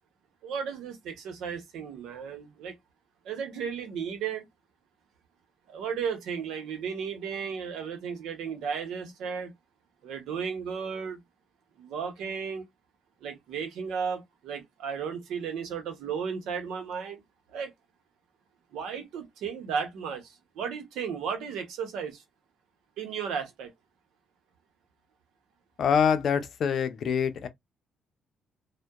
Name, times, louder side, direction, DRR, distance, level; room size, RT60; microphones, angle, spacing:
voice 1, 0.4-2.7 3.2-4.5 5.7-9.5 10.0-11.2 11.8-12.6 13.2-17.2 17.5-17.7 18.7-22.2 23.0-23.7, right 6 dB, 85° right, 0.8 m, -34 dB
voice 2, 25.8-27.5, left 7 dB, 60° left, 0.5 m, -25 dB
2.7 x 2.1 x 2.3 m
cardioid pair, 90°, 0 cm